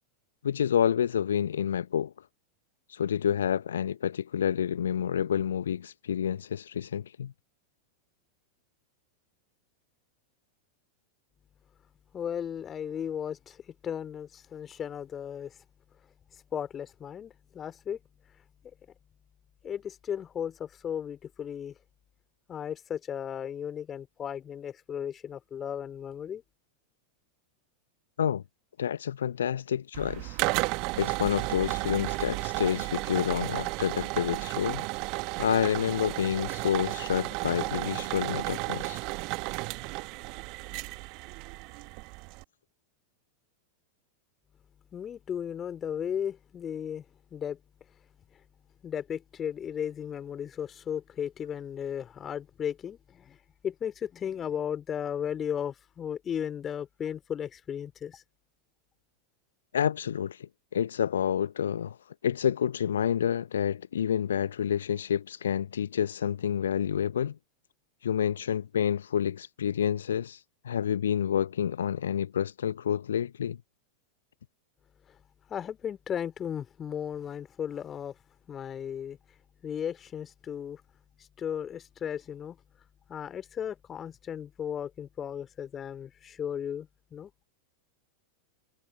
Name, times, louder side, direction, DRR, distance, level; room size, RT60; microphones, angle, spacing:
voice 1, 0.4-2.1 2.9-7.3 28.2-28.4 28.8-30.4 31.0-34.9 35.4-39.0 59.7-62.0 62.2-67.3 68.0-73.6, left 9 dB, 65° left, 0.8 m, -29 dB
voice 2, 12.1-15.6 16.5-18.0 19.6-21.8 22.5-26.4 44.9-47.0 47.3-47.6 48.8-53.4 53.6-58.2 75.1-75.2 75.5-78.1 78.5-79.2 79.6-80.8 81.4-82.6 83.1-87.3, left 8 dB, 25° left, 4.0 m, -35 dB
sound 1, 29.9-42.4, right 28 dB, 45° right, 1.8 m, -33 dB
figure-of-eight pair, 90°, 0 cm